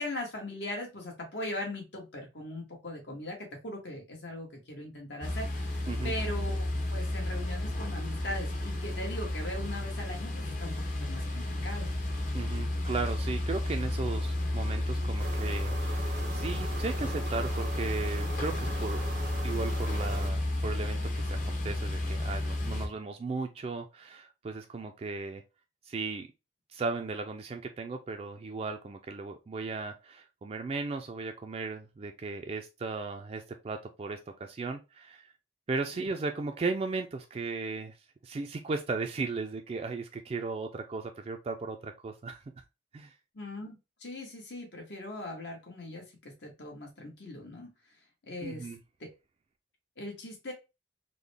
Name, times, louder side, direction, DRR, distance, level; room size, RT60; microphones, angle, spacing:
voice 1, 0.0-6.6 6.9-10.7 11.0-11.9 35.9-36.0 43.3-47.7 48.2-48.7 49.0-49.1 50.0-50.5, left 1 dB, 80° left, 1 dB, 1.4 m, -40 dB
sound 1, 5.2-22.9, left 1 dB, 50° left, 0.8 m, -32 dB
voice 2, 12.3-19.0 19.4-25.4 25.8-26.3 26.7-35.3 35.7-38.0 38.2-42.6 42.9-43.1 48.4-48.8, right 3 dB, 35° right, 5 dB, 0.3 m, -36 dB
sound 2, 15.2-20.3, right 3 dB, 70° right, 0.7 m, -41 dB
3.8 x 2.1 x 3.3 m, 0.26 s
head